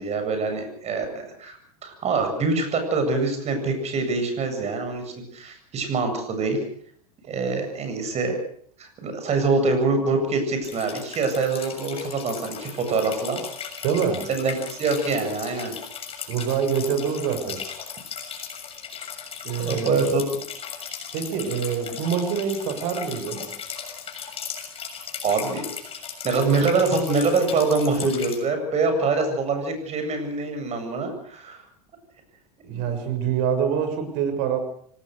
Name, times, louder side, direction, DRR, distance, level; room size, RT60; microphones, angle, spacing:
voice 1, 0.0-5.0 5.3-6.6 7.3-8.4 8.8-13.4 14.3-15.8 19.6-20.2 25.2-25.7 26.2-31.6 32.7-32.8, right 3 dB, 35° right, 7 dB, 8.0 m, -24 dB
sound 1, 10.6-28.4, left 7 dB, 30° left, 6.8 m, -37 dB
voice 2, 13.8-14.2 16.3-17.6 19.4-20.0 21.1-23.5 32.6-34.6, right 7 dB, 60° right, 8 dB, 6.7 m, -25 dB
25.5 x 18.5 x 6.6 m, 0.62 s
hypercardioid pair, 110°, 19 cm